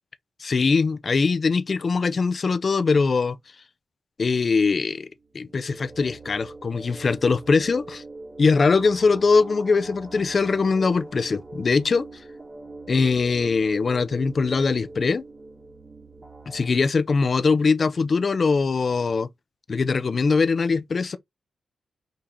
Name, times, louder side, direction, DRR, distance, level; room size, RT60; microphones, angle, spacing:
voice 1, 0.4-3.4 4.2-5.1 5.3-8.0 8.4-12.0 12.9-15.2 16.5-19.3 19.7-21.2, left 4 dB, 50° left, 0.6 m, -22 dB
sound 1, 5.2-16.7, right 2 dB, 35° right, 1.5 m, -42 dB
5.1 x 2.9 x 3.6 m
cardioid pair, 75°, 0 cm